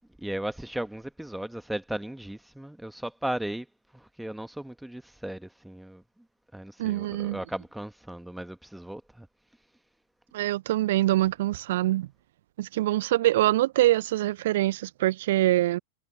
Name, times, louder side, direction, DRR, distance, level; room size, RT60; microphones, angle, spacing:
voice 1, 0.2-3.7 3.9-6.0 6.5-9.3, right 1 dB, 5° right, 1.5 m, -36 dB
voice 2, 6.8-7.4 10.3-12.1 12.6-15.8, right 15 dB, 55° right, 0.4 m, -24 dB
figure-of-eight pair, 90°, 0 cm